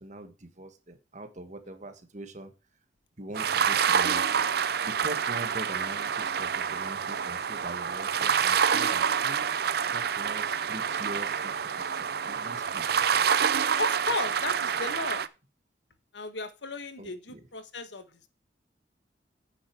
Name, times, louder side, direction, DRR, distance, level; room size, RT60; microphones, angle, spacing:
voice 1, 0.0-2.5 3.2-4.4 4.8-9.5 9.9-11.7 11.9-12.8 17.0-17.4, right 1 dB, 40° right, 8 dB, 1.6 m, -42 dB
sound 1, 3.3-15.3, right 7 dB, 55° right, 0.6 m, -27 dB
voice 2, 13.8-15.2 16.1-18.3, left 2 dB, 75° left, 10 dB, 1.3 m, -35 dB
9.4 x 6.9 x 4.8 m, 0.30 s
head